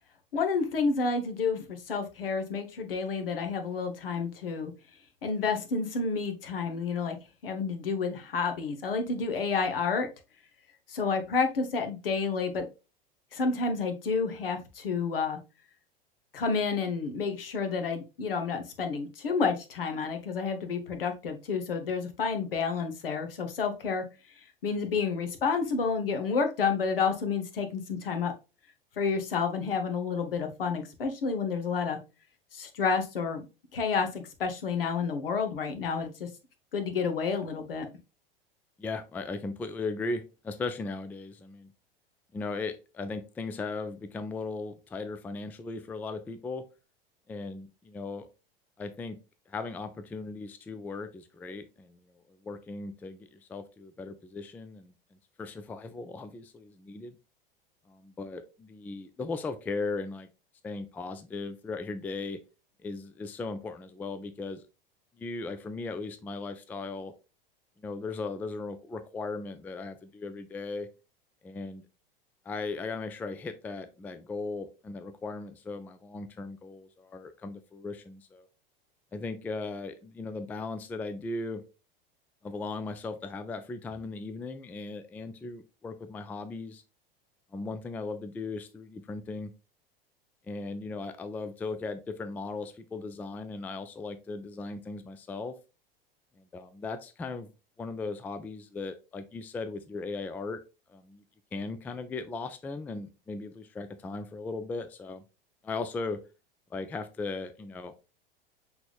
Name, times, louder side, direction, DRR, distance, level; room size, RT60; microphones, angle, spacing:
voice 1, 0.3-4.7 5.2-7.2 7.4-10.1 10.9-12.6 13.3-15.4 16.3-24.0 24.6-28.3 29.0-32.0 32.5-33.4 33.7-36.3 36.7-37.9, left 5 dB, 75° left, 6 dB, 1.1 m, -30 dB
voice 2, 38.8-41.7 42.3-46.6 47.3-48.3 48.8-49.2 49.5-52.0 52.4-54.9 55.4-57.2 57.9-60.3 60.6-62.4 62.8-64.6 65.2-67.1 67.8-70.9 71.4-71.8 72.5-78.5 79.1-81.6 82.4-86.8 87.5-89.5 90.5-95.5 96.5-97.5 97.8-100.6 100.9-101.2 101.5-105.2 105.6-106.2 106.7-108.1, left 3 dB, 5° left, 11 dB, 0.3 m, -37 dB
5.9 x 3.5 x 2.3 m, 0.29 s
figure-of-eight pair, 85°, 29 cm